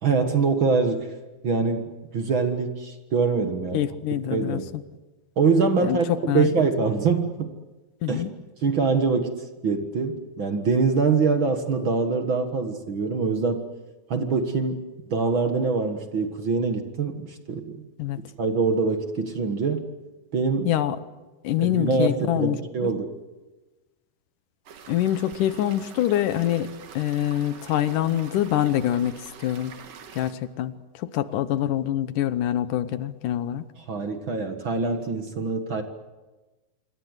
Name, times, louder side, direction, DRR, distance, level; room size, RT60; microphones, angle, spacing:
voice 1, 0.0-1.1 1.4-3.8 4.3-4.7 5.4-7.5 8.1-8.2 8.6-9.3 9.6-13.6 14.1-14.8 15.1-17.8 18.4-19.8 20.3-20.7 21.6-23.1 33.9-35.8, right 4 dB, 45° right, 7 dB, 1.9 m, -24 dB
voice 2, 3.7-4.6 5.8-6.0 6.3-6.5 8.0-8.3 18.0-18.2 20.7-21.0 21.4-22.9 24.9-26.7 27.0-29.2 29.4-29.7 30.1-33.6, left 12 dB, 75° left, 13 dB, 2.5 m, -25 dB
sound 1, 24.7-30.3, right 6 dB, 75° right, 3.6 m, -45 dB
27.0 x 24.0 x 8.1 m, 1.2 s
omnidirectional pair, 3.8 m